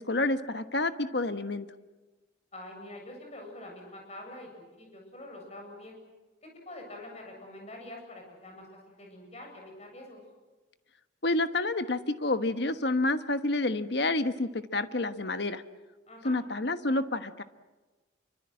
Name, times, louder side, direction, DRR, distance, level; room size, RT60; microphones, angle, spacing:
voice 1, 0.0-1.7 11.2-15.6 16.2-17.4, left 2 dB, 60° left, 10 dB, 1.3 m, -29 dB
voice 2, 2.5-4.5 4.8-6.0 6.4-10.2 16.1-16.4, left 1 dB, 35° left, 2 dB, 7.8 m, -45 dB
27.5 x 24.5 x 7.7 m, 1.2 s
head